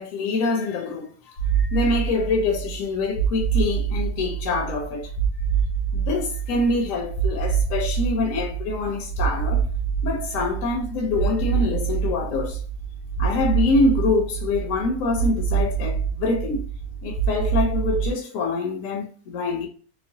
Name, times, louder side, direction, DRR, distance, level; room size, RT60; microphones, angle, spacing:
voice 1, 0.0-5.1 5.9-9.6 10.0-12.6 13.2-16.6 17.0-19.7, left 3 dB, 75° left, 0.9 m, -25 dB
sound 1, 1.4-18.1, right 7 dB, 90° left, 1.2 m, -26 dB
3.0 x 2.1 x 2.6 m
omnidirectional pair, 1.5 m